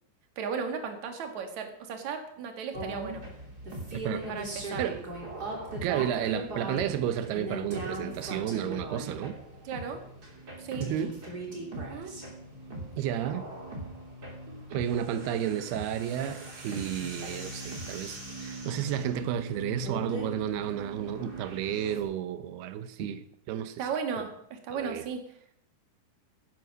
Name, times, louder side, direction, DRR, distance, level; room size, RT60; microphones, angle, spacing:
voice 1, 0.4-3.2 4.3-4.8 9.6-10.0 10.6-10.9 11.7-12.1 23.8-25.2, right 6 dB, 55° right, 3.0 m, -35 dB
sound 1, 2.7-22.0, right 1 dB, 25° right, 3.3 m, -39 dB
voice 2, 3.9-4.3 4.8-5.0 5.8-9.4 10.8-11.1 13.0-13.5 14.7-23.2 23.5-23.8 24.7-25.1, right 10 dB, 90° right, 2.9 m, -32 dB
17.0 x 9.7 x 6.3 m
omnidirectional pair, 4.5 m